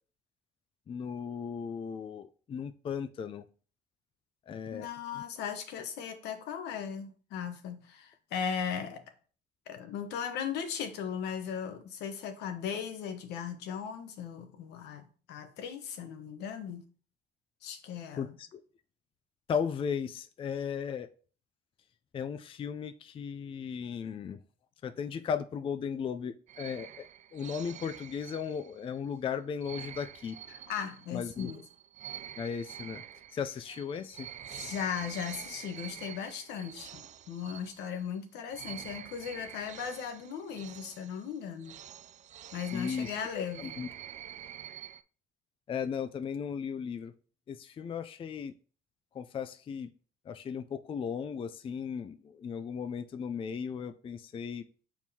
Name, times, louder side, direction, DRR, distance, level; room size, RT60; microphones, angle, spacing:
voice 1, 0.9-3.4 4.5-4.9 18.2-18.6 19.5-21.1 22.1-24.4 24.8-27.1 27.3-30.4 31.1-31.5 32.4-33.0 33.3-34.3 42.7-43.9 45.7-47.1 47.5-48.5 49.1-49.9 50.3-54.6, left 7 dB, 30° left, 0.4 m, -36 dB
voice 2, 4.7-9.0 9.7-16.9 17.6-18.4 30.5-31.6 34.5-41.8 42.5-43.9, left 7 dB, 80° left, 1.1 m, -37 dB
sound 1, 26.5-29.0 29.6-38.2 38.5-45.0, right 10 dB, 45° right, 0.4 m, -47 dB
7.3 x 4.5 x 2.8 m
cardioid pair, 110°, 17 cm